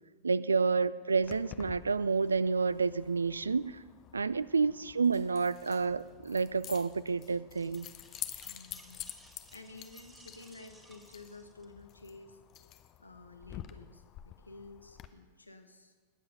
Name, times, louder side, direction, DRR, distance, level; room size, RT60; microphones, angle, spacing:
voice 1, 0.2-3.8 4.1-7.9, right 4 dB, 75° right, 0.4 m, -29 dB
Keys jangling, 1.2-15.1, left 12 dB, 35° left, 0.7 m, -49 dB
sound 1, 7.5-11.9, right 1 dB, 10° right, 1.7 m, -59 dB
voice 2, 8.4-12.4 13.0-15.9, left 3 dB, 85° left, 1.1 m, -52 dB
19.5 x 7.8 x 5.4 m
figure-of-eight pair, 90°, 0 cm